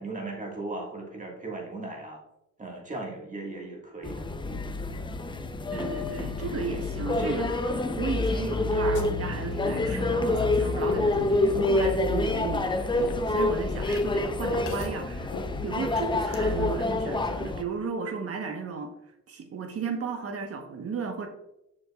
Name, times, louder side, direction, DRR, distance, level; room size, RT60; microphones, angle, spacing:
voice 1, 0.0-2.2 2.6-4.7, right 2 dB, 25° right, 0 dB, 1.7 m, -37 dB
sound 1, 4.0-17.6, left 2 dB, 15° left, 0.6 m, -27 dB
voice 2, 5.7-15.3 15.6-18.9 19.3-21.3, right 5 dB, 50° right, 5 dB, 1.1 m, -34 dB
sound 2, 8.9-16.6, left 4 dB, 85° left, 0.9 m, -41 dB
7.1 x 6.2 x 2.3 m, 0.86 s
cardioid pair, 90°, 30 cm